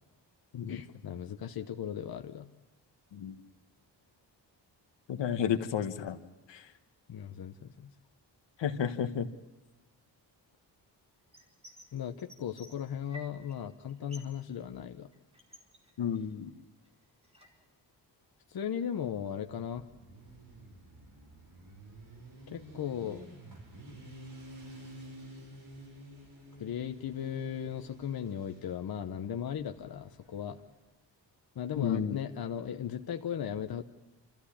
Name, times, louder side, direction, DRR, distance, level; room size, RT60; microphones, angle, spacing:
voice 1, 0.7-2.5 7.1-7.9 11.9-15.1 18.5-19.8 22.5-23.2 26.6-30.6 31.5-33.8, left 9 dB, 55° left, 5 dB, 1.0 m, -37 dB
voice 2, 5.1-6.2 6.5-6.6 8.6-9.3 16.0-16.5 31.7-32.2, left 8 dB, 80° left, 8 dB, 1.6 m, -31 dB
sound 1, 11.3-11.9 12.2-13.6 13.8-14.4 14.7-16.5 16.8-17.7, equal, 15° right, 4.5 m, -54 dB
Motorcycle, 19.1-30.7, right 1 dB, 50° right, 6.0 m, -51 dB
29.0 x 14.5 x 8.6 m, 1.2 s
wide cardioid pair, 130°, 43 cm